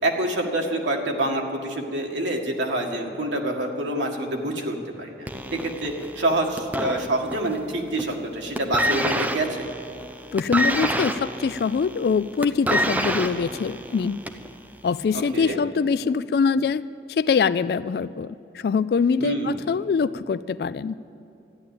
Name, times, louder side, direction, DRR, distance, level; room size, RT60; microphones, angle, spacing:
voice 1, 0.0-9.7 15.1-15.6 19.2-19.6, right 1 dB, 90° right, 0 dB, 1.9 m, -27 dB
sound 1, 5.3-7.6 7.9-8.3 8.5-14.5 15.3-15.4, right 1 dB, 10° right, 0.6 m, -27 dB
voice 2, 10.3-14.2 14.8-16.8 17.1-21.0, left 5 dB, 60° left, 16 dB, 0.3 m, -23 dB
14.0 x 10.5 x 8.6 m, 2.7 s
head